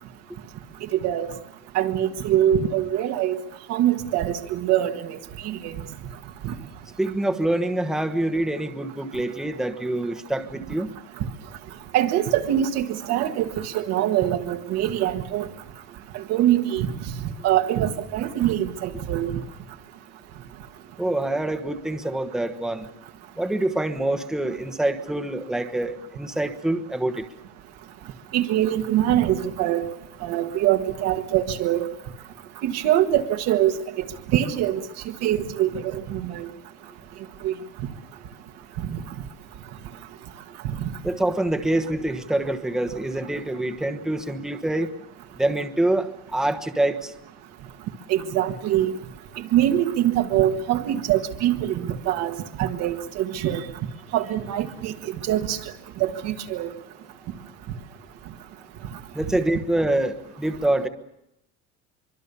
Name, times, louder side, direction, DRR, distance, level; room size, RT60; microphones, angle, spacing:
voice 1, 0.9-1.3 1.7-3.4 3.7-5.2 5.4-5.7 6.4-6.5 11.9-15.5 16.1-16.9 17.4-19.3 28.3-29.8 30.2-31.9 32.6-34.0 34.3-34.8 35.2-36.5 37.4-37.5 38.9-39.0 48.1-48.9 49.5-53.6 54.1-55.6 56.0-56.7, right 12 dB, 65° right, 5 dB, 1.7 m, -23 dB
voice 2, 7.0-10.9 21.0-22.9 23.4-27.2 41.0-44.9 45.4-47.1 59.1-60.9, right 1 dB, ahead, 6 dB, 1.2 m, -25 dB
24.0 x 24.0 x 7.0 m, 0.84 s
cardioid pair, 155°, 29 cm